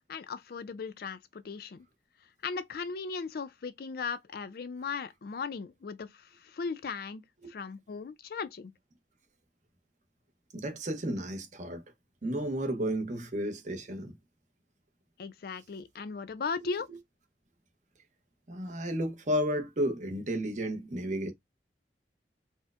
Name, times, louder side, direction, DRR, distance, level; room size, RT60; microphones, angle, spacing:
voice 1, 0.1-1.8 2.4-8.7 15.2-16.9, left 5 dB, 55° left, 0.4 m, -37 dB
voice 2, 10.5-11.8 12.2-14.1 16.9-17.0 18.5-21.3, equal, 45° right, 0.7 m, -32 dB
4.3 x 2.1 x 2.4 m
head